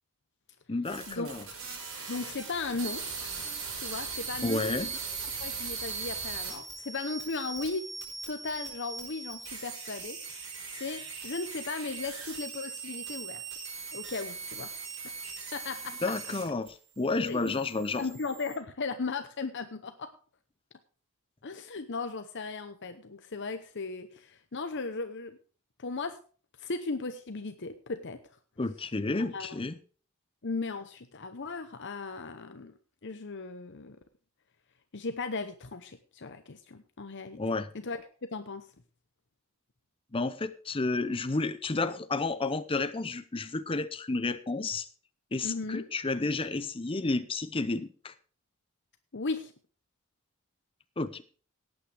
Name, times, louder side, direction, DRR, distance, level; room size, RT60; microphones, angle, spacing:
voice 1, 0.7-1.4 4.4-4.9 16.0-18.1 28.6-29.8 37.4-37.7 40.1-44.9 45.3-48.1 51.0-51.2, left 3 dB, 25° left, 0.6 m, -31 dB
sound 1, 0.8-16.7 17.0-18.6, right 5 dB, 60° right, 5.3 m, -40 dB
voice 2, 2.1-3.0 3.7-5.0 5.4-7.9 8.3-13.4 13.9-14.7 15.5-16.1 17.2-17.5 18.0-20.1 21.4-25.4 25.8-26.2 26.6-28.2 29.2-29.6 30.4-32.7 33.0-34.0 34.9-37.4 37.7-38.7 45.4-45.9 49.1-49.5, left 3 dB, 50° left, 0.8 m, -37 dB
18.0 x 8.7 x 3.4 m
head